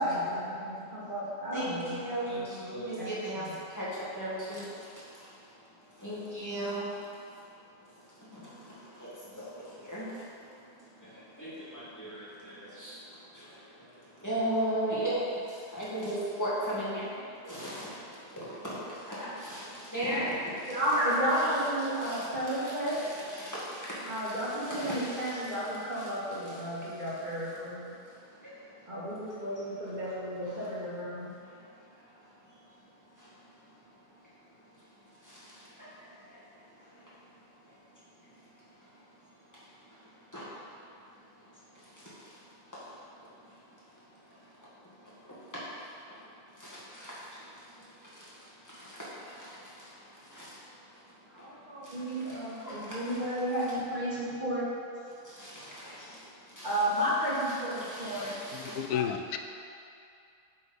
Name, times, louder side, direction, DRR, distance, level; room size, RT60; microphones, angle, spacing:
voice 1, 0.0-2.0 2.2-2.6 2.9-3.6 20.7-22.9 24.0-27.8 28.9-31.3 51.3-54.7 56.6-58.8, equal, 30° right, -8 dB, 1.7 m, -33 dB
voice 2, 1.5-7.3 7.9-21.3 22.0-25.4 26.0-26.1 26.5-26.9 28.0-28.9 31.4-32.1 32.5-32.6 33.1-33.6 35.1-37.1 37.7-37.8 38.2-38.5 38.8-39.0 39.5-40.8 41.4-42.4 42.7-44.7 45.0-46.2 46.5-52.2 52.6-53.2 55.2-56.7 57.8-58.8, right 1 dB, 10° left, -10 dB, 1.8 m, -39 dB
voice 3, 58.5-59.4, left 8 dB, 80° left, 6 dB, 1.1 m, -32 dB
7.7 x 4.4 x 5.4 m, 2.5 s
omnidirectional pair, 1.6 m